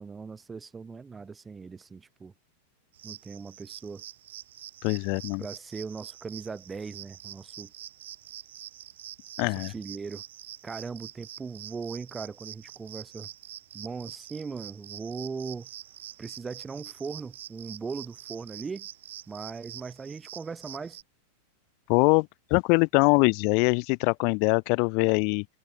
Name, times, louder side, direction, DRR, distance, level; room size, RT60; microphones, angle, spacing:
voice 1, 0.0-2.3 3.0-4.0 5.4-7.7 9.4-10.2 10.6-13.3 13.7-15.7 16.2-18.9 19.3-21.0, right 5 dB, 15° right, 1.6 m, -39 dB
sound 1, 2.9-21.0, right 12 dB, 60° right, 4.3 m, -46 dB
voice 2, 4.8-5.4 9.4-9.7 21.9-25.5, left 39 dB, 45° left, 0.5 m, -23 dB
figure-of-eight pair, 90°, 0 cm